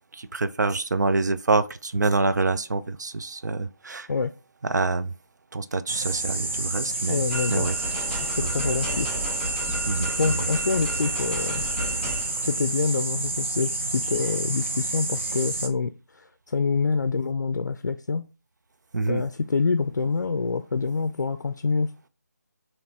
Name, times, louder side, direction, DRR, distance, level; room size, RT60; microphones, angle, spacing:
voice 1, 0.1-4.1 4.6-5.1 5.5-7.2 7.5-7.7 8.4-8.5 9.9-10.1 18.9-19.2, right 3 dB, 80° right, 0.4 m, -26 dB
sound 1, 5.9-15.7, right 2 dB, 45° right, 0.7 m, -29 dB
voice 2, 7.1-7.7 8.4-9.1 10.2-11.7 12.4-18.3 19.1-21.9, left 4 dB, 85° left, 0.4 m, -26 dB
sound 2, 7.3-12.7, right 1 dB, ahead, 1.8 m, -33 dB
5.0 x 3.0 x 2.8 m
figure-of-eight pair, 170°, 9 cm